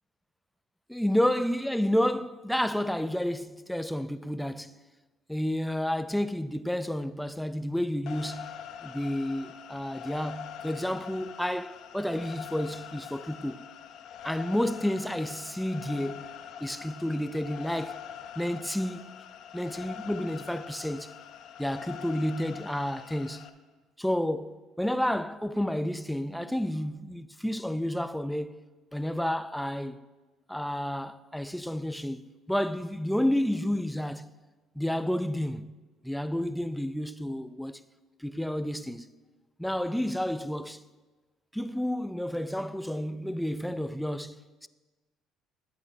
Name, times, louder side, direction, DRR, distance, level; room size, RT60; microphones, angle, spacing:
voice 1, 0.9-4.8 5.3-8.6 8.8-13.7 14.2-16.3 16.6-18.0 18.4-19.0 19.5-21.1 21.6-23.5 24.0-28.6 28.9-30.0 30.5-34.3 34.8-35.7 36.0-37.8 38.2-39.1 39.6-40.8 41.5-44.7, left 1 dB, ahead, 0.3 m, -30 dB
sound 1, 8.1-23.5, left 9 dB, 65° left, 0.5 m, -44 dB
12.0 x 8.4 x 2.7 m
supercardioid pair, 85°, 0 cm